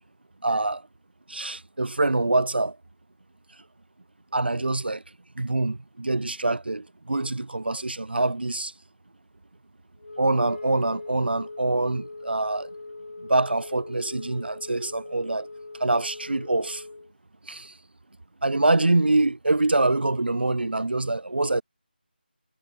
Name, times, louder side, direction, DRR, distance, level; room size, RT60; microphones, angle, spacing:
voice 1, 0.4-0.8 1.3-2.8 4.3-5.0 5.4-8.7 10.2-12.7 13.2-15.5 15.8-16.8 17.5-17.7 18.4-21.6, right 2 dB, 75° right, 2.0 m, -25 dB
Wind instrument woodwind instrument, 10.0-17.1, left 2 dB, 55° left, 1.4 m, -40 dB
figure-of-eight pair, 175°, 6 cm